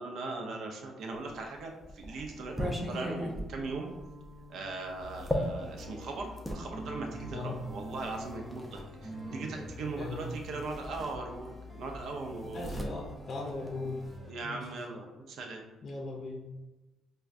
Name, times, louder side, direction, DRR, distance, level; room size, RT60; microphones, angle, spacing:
voice 1, 0.0-3.9 4.5-12.9 14.3-15.6, right 3 dB, 70° right, 2 dB, 0.6 m, -39 dB
sound 1, 1.3-6.6 7.5-8.9 10.1-10.2 10.6-11.7 11.9-14.2, equal, ahead, 0.5 m, -38 dB
sound 2, 3.7-9.8, right 1 dB, 40° right, 0.9 m, -46 dB
sound 3, 5.0-14.3, left 3 dB, 20° left, 1.0 m, -48 dB
voice 2, 9.9-10.4 12.5-14.0 14.4-14.7 15.8-16.5, left 2 dB, 50° left, 0 dB, 0.5 m, -38 dB
4.5 x 2.2 x 2.5 m, 1.1 s
cardioid pair, 90°, 0 cm